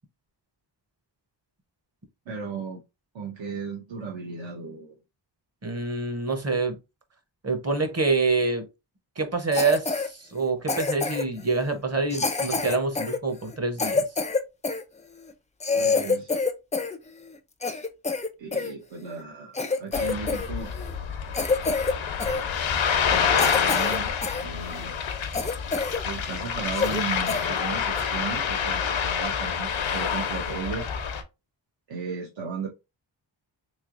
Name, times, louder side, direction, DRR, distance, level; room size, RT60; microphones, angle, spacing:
voice 1, 2.3-2.8 3.1-5.0 15.7-16.4 18.4-20.7 23.0-24.1 24.4-24.9 26.0-30.9 31.9-32.7, right 5 dB, 75° right, 0.8 m, -35 dB
voice 2, 5.6-6.8 7.4-8.7 9.2-14.0, right 3 dB, 35° right, 0.7 m, -26 dB
Cough, 9.5-10.1 10.7-11.4 12.1-14.8 15.3-15.4 15.6-17.0 17.3-18.7 19.2-19.3 19.5-20.5 20.7-20.9 21.3-21.9 22.2-22.4 22.9-23.0 23.4-24.4 24.8-24.9 25.3-26.0 26.3-26.4 26.7-27.0 27.3-27.4 28.0-28.2, left 4 dB, 15° left, 0.3 m, -27 dB
Ocean, 19.9-31.2, left 7 dB, 85° left, 0.7 m, -27 dB
3.5 x 3.2 x 2.4 m
wide cardioid pair, 145°, 46 cm